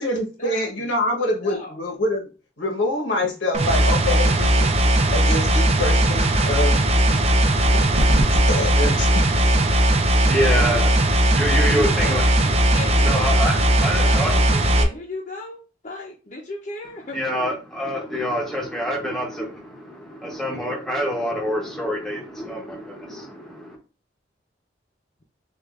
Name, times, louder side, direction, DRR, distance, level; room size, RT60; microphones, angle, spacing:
voice 1, 0.0-2.3 2.6-4.7 5.1-6.8 8.5-9.2, left 1 dB, 75° left, 1 dB, 1.1 m, -25 dB
voice 2, 1.0-1.8 7.1-7.4 10.4-10.9 11.5-12.3 12.7-17.2 17.4-17.5, left 2 dB, 40° left, -3 dB, 0.7 m, -36 dB
sound 1, 3.5-14.8, right 1 dB, 30° right, 0.5 m, -18 dB
sound 2, 7.5-14.8, equal, 80° right, 1.0 m, -32 dB
voice 3, 10.2-11.0 11.3-12.2 12.6-14.4 17.1-23.8, equal, 5° left, -1 dB, 0.8 m, -26 dB
6.5 x 2.5 x 2.4 m, 0.33 s
head